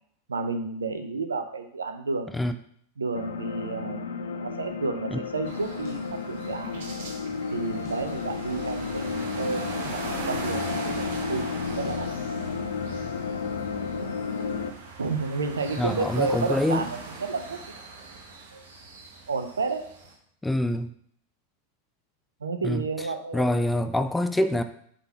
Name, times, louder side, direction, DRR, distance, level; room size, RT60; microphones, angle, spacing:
voice 1, 0.3-2.3 3.0-6.8 7.5-10.0 10.3-12.1 14.0-14.2 15.0-17.8 18.5-18.7 19.3-19.9 22.4-23.7, right 4 dB, 70° right, 8 dB, 0.7 m, -31 dB
sound 1, 3.1-14.7, left 5 dB, 65° left, 0.5 m, -32 dB
sound 2, 5.4-20.1, right 3 dB, 55° right, 1.2 m, -40 dB
sound 3, 5.8-6.1 7.8-8.1 9.8-10.1 11.8-12.1, left 4 dB, 30° left, 1.0 m, -48 dB
voice 2, 15.8-16.8 20.4-20.9 22.6-22.8 23.3-24.6, left 1 dB, 5° left, 9 dB, 0.4 m, -25 dB
6.8 x 3.8 x 4.4 m, 0.66 s
figure-of-eight pair, 90°, 0 cm